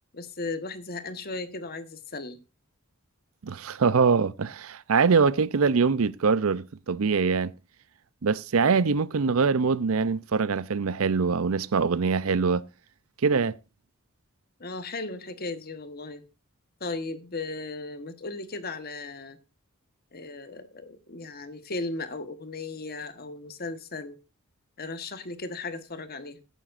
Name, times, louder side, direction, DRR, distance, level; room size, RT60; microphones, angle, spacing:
voice 1, 0.1-2.4 14.6-16.2 16.8-19.4 20.1-24.2 24.8-26.4, left 3 dB, 45° left, 1.3 m, -36 dB
voice 2, 3.4-7.5 8.2-12.7 13.2-13.5, right 5 dB, 70° right, 0.6 m, -23 dB
16.0 x 9.2 x 2.5 m
head